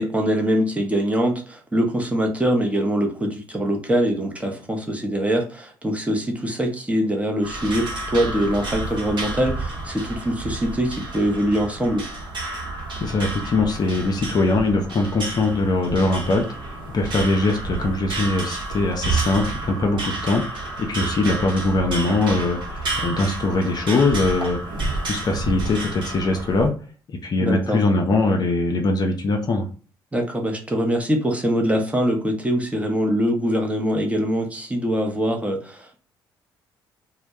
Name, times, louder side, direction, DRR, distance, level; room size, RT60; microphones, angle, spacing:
voice 1, 0.0-12.1 27.4-27.8 30.1-36.0, equal, 10° right, 2 dB, 0.7 m, -23 dB
sound 1, 7.4-26.7, right 2 dB, 45° right, 0.9 m, -30 dB
voice 2, 13.0-26.7 27.1-29.7, left 2 dB, 40° left, 3 dB, 0.5 m, -22 dB
2.1 x 2.1 x 2.7 m, 0.38 s
figure-of-eight pair, 50°, 11 cm